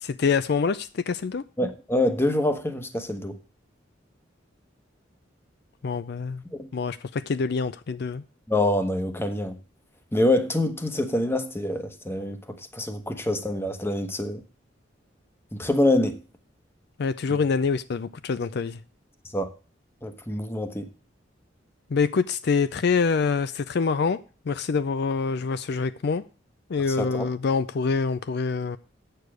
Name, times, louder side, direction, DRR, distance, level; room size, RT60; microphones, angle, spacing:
voice 1, 0.0-1.4 5.8-6.4 6.7-8.2 17.0-18.8 21.9-26.2 26.7-28.8, left 5 dB, 60° left, 0.4 m, -25 dB
voice 2, 1.6-3.4 6.6-6.7 8.5-9.6 10.1-14.4 15.5-16.2 19.3-19.5 20.0-20.9 27.0-27.3, left 1 dB, 15° left, 1.0 m, -25 dB
8.3 x 6.9 x 6.2 m
head